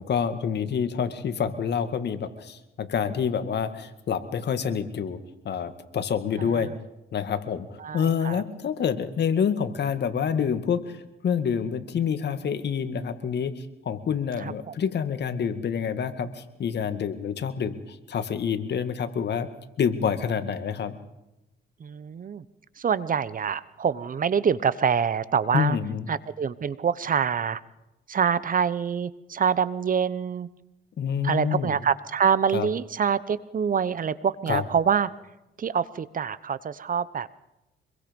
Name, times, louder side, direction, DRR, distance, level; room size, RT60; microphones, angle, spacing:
voice 1, 0.0-5.2 5.4-6.7 7.1-19.5 19.8-21.0 25.5-26.1 31.0-31.8 32.5-32.7 34.5-34.6, left 7 dB, 60° left, 9 dB, 2.1 m, -27 dB
voice 2, 7.8-8.4 14.7-14.8 21.8-22.4 22.8-25.8 26.1-27.6 28.1-30.5 31.2-35.1 35.6-37.3, right 7 dB, 45° right, 17 dB, 1.0 m, -25 dB
25.5 x 22.5 x 5.4 m, 0.96 s
cardioid pair, 90°, 20 cm